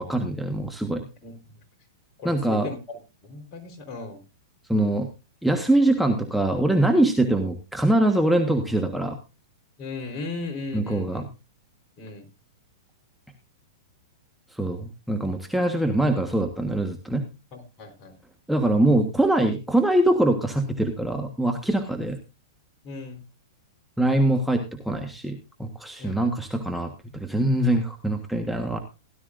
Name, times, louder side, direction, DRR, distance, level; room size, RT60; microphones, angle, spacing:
voice 1, 0.0-1.0 2.2-2.7 4.7-5.1 5.4-9.2 10.7-11.3 14.5-17.2 18.5-22.2 24.0-28.8, right 1 dB, ahead, 4 dB, 1.4 m, -23 dB
voice 2, 2.2-4.2 4.7-4.9 9.8-11.2 12.0-12.2 17.5-18.2 22.8-23.2 26.0-26.3, left 3 dB, 40° left, 4 dB, 4.2 m, -37 dB
17.0 x 12.0 x 2.6 m, 0.28 s
hypercardioid pair, 120°, 2 cm